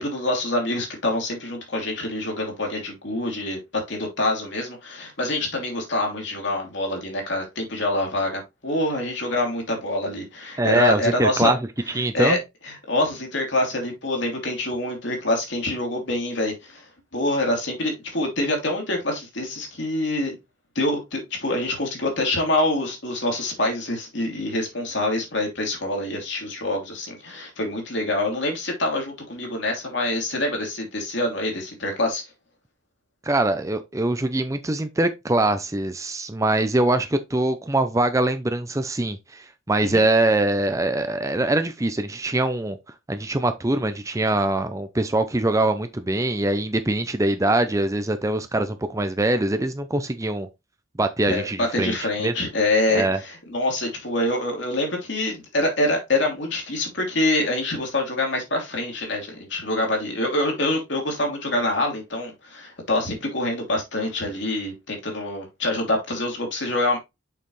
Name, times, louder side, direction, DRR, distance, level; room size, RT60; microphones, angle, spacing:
voice 1, 0.0-11.5 12.1-20.3 20.7-32.2 39.8-40.0 51.3-67.0, left 1 dB, 55° left, 2.7 m, -25 dB
voice 2, 10.6-11.6 11.9-12.4 33.2-42.8 43.1-50.5 51.0-52.0 52.2-52.3 52.9-53.2, right 2 dB, 15° right, 0.5 m, -23 dB
6.6 x 5.6 x 3.2 m
head